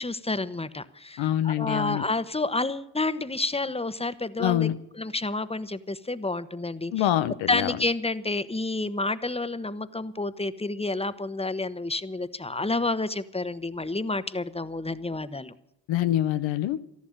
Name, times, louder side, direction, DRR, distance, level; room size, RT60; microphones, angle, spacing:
voice 1, 0.0-4.7 5.0-7.1 7.5-15.5, left 2 dB, 15° left, 13 dB, 1.2 m, -29 dB
voice 2, 1.2-2.0 4.4-4.8 6.9-7.8 15.9-16.8, left 12 dB, 90° left, 12 dB, 0.7 m, -25 dB
13.5 x 11.5 x 8.9 m, 0.76 s
supercardioid pair, 40°, 45 cm